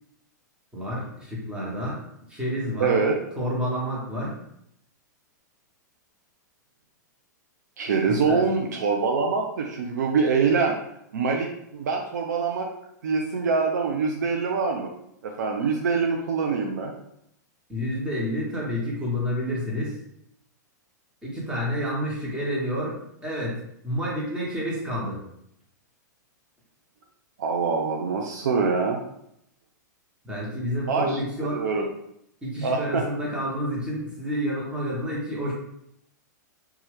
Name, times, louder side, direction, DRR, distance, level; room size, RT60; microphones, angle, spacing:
voice 1, 0.7-2.0 2.3-3.0 3.4-4.4 8.1-8.4 17.7-20.0 21.2-25.2 30.2-31.6 32.4-35.5, equal, 10° right, -5 dB, 1.1 m, -29 dB
voice 2, 2.8-3.2 7.8-10.7 11.1-12.7 13.0-14.9 15.2-16.9 27.4-29.0 30.9-31.2 31.5-31.9 32.6-33.0, right 5 dB, 70° right, 2 dB, 0.4 m, -24 dB
2.7 x 2.3 x 3.3 m, 0.76 s
hypercardioid pair, 105°, 10 cm